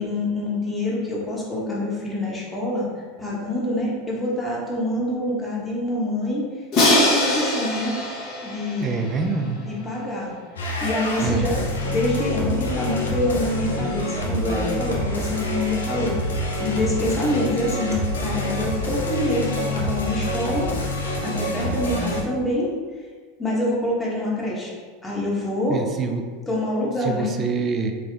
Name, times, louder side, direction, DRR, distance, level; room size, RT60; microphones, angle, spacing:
voice 1, 0.0-2.9 3.2-6.4 6.8-8.0 8.4-9.0 9.6-10.4 10.8-20.7 21.2-22.7 23.4-24.7 25.0-25.8 26.5-27.3, left 1 dB, 15° left, -5 dB, 1.1 m, -26 dB
Crash cymbal, 6.7-9.7, left 1 dB, 50° left, 1.1 m, -22 dB
voice 2, 8.8-9.6 11.2-11.5 25.7-26.2 27.1-27.9, right 5 dB, 30° right, 4 dB, 0.4 m, -25 dB
sound 1, 10.6-22.2, left 1 dB, 90° left, 0.6 m, -27 dB
3.5 x 2.3 x 3.4 m, 1.5 s
hypercardioid pair, 90°, 0 cm